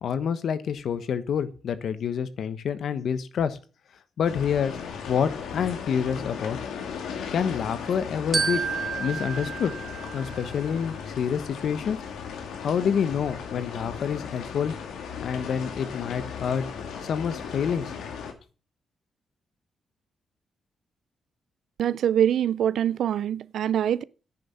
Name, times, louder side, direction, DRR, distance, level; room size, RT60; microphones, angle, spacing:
voice 1, 0.0-3.6 4.2-4.8 5.1-6.6 7.3-8.6 9.0-9.7 10.1-12.0 12.6-14.7 15.2-16.6 17.0-17.9, left 7 dB, 70° left, 1.2 m, -27 dB
sound 1, 4.3-18.3, left 6 dB, 90° left, 2.1 m, -36 dB
Glockenspiel, 8.3-10.8, right 6 dB, 35° right, 1.7 m, -31 dB
voice 2, 21.8-24.0, right 10 dB, 80° right, 0.5 m, -24 dB
10.0 x 6.9 x 7.3 m
cardioid pair, 80°, 0 cm